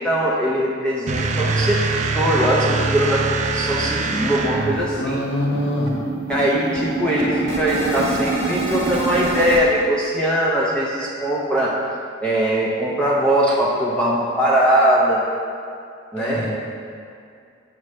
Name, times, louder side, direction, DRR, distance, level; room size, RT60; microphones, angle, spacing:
voice 1, 0.0-1.8 2.1-5.2 6.3-11.7 12.2-15.2 16.1-16.4, right 1 dB, 5° left, -6 dB, 0.6 m, -20 dB
sound 1, 1.1-5.0, right 3 dB, 40° right, 0.4 m, -23 dB
sound 2, 2.3-2.4 2.8-2.9 3.2-3.4 3.6-9.6, right 2 dB, 60° right, 1.2 m, -27 dB
voice 2, 5.0-6.0 16.2-16.5, equal, 65° left, -3 dB, 1.3 m, -24 dB
7.4 x 6.3 x 3.2 m, 2.4 s
head